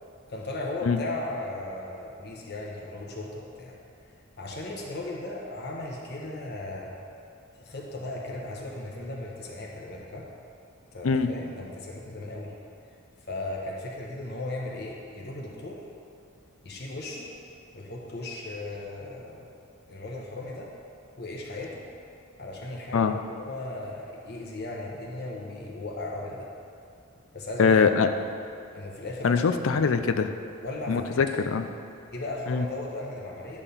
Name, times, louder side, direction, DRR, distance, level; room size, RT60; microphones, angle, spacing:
voice 1, 0.3-3.7 4.4-6.9 7.5-10.3 10.9-12.5 13.3-15.8 16.6-17.3 17.7-19.5 19.9-20.7 21.2-21.9 22.4-26.5 27.3-27.8 28.1-28.2 28.7-29.9 30.6-31.1 32.1-33.6, left 2 dB, 50° left, -2 dB, 1.1 m, -36 dB
voice 2, 27.6-28.1 29.2-30.3 30.9-31.7 32.5-32.6, left 5 dB, 75° left, 8 dB, 0.4 m, -22 dB
10.0 x 3.7 x 6.9 m, 2.5 s
head